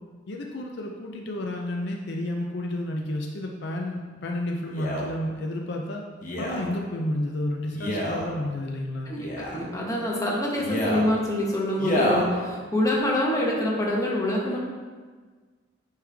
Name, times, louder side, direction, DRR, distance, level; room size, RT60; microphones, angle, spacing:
voice 1, 0.3-6.0 6.4-9.1, left 1 dB, 60° left, 0 dB, 0.5 m, -31 dB
Male speech man speaking, 4.7-5.1 6.2-6.6 7.7-8.3 9.2-9.6 10.6-11.1 11.8-12.3 13.0-13.1, equal, 45° left, 1.1 m, -27 dB
voice 2, 9.1-14.6, left 1 dB, 15° left, -3 dB, 1.1 m, -26 dB
9.6 x 3.3 x 3.4 m, 1.5 s
head